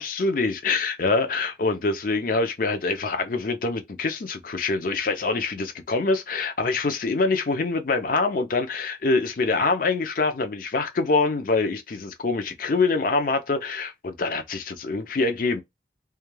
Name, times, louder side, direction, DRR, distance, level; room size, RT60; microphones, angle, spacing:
voice 1, 0.0-15.6, left 3 dB, 50° left, 0.5 m, -25 dB
2.3 x 2.2 x 3.1 m
head